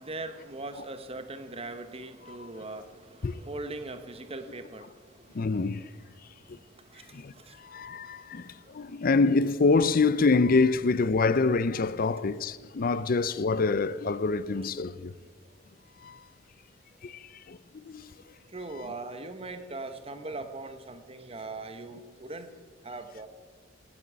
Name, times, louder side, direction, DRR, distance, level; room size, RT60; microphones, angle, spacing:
voice 1, 0.0-5.3 6.9-7.1 7.3-7.6 7.9-8.0 18.5-22.5 22.8-23.3, right 2 dB, 30° right, 1.2 m, -40 dB
voice 2, 5.3-5.8 7.1-7.3 7.7-15.1 16.0-16.2 17.0-17.2 17.5-17.6 17.9-18.0, left 3 dB, 50° left, 0.5 m, -25 dB
16.5 x 8.6 x 8.7 m
head